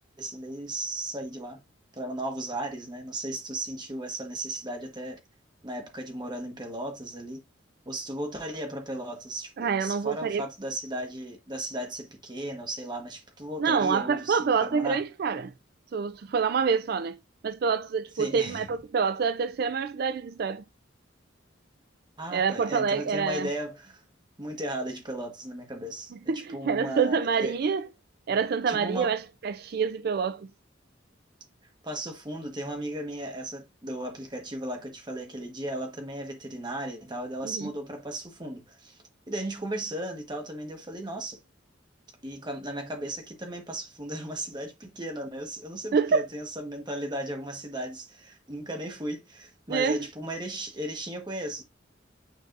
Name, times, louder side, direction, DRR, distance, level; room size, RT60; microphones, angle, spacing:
voice 1, 0.2-1.6 1.9-5.2 5.6-7.4 7.8-15.0 18.1-18.7 22.2-24.0 24.4-27.6 28.7-29.1 31.8-39.0 39.3-41.4 42.2-51.6, right 1 dB, 25° right, 1.3 m, -36 dB
voice 2, 9.6-10.5 13.6-15.5 15.9-17.2 17.4-20.6 22.3-23.5 26.3-27.9 28.3-30.5 37.4-37.7 45.9-46.3 49.7-50.0, right 5 dB, 55° right, 0.4 m, -27 dB
9.2 x 4.6 x 2.5 m
head